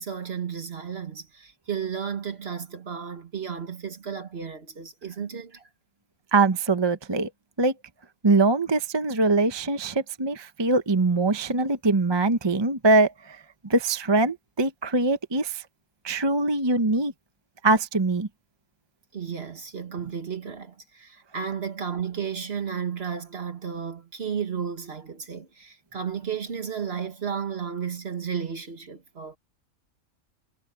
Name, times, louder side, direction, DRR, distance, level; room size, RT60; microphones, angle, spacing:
voice 1, 0.0-5.7 19.1-29.4, right 7 dB, 45° right, 1.7 m, -33 dB
voice 2, 6.3-7.3 7.6-7.7 8.2-13.4 13.7-15.6 16.0-17.1 17.6-18.3, right 3 dB, 20° right, 0.8 m, -22 dB
omnidirectional pair, 1.5 m